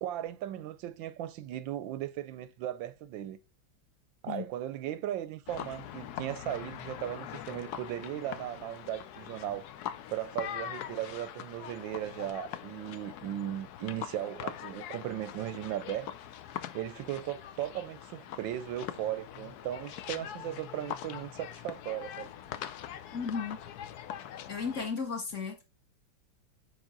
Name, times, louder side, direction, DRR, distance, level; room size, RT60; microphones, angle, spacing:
voice 1, 0.0-3.4 4.2-9.7 10.1-16.1 16.7-22.3, right 12 dB, 75° right, 1.2 m, -37 dB
sound 1, 5.5-24.9, left 10 dB, 65° left, 1.0 m, -43 dB
voice 2, 23.1-23.6 24.5-25.6, left 5 dB, 40° left, 1.8 m, -34 dB
7.2 x 4.9 x 3.8 m
omnidirectional pair, 2.2 m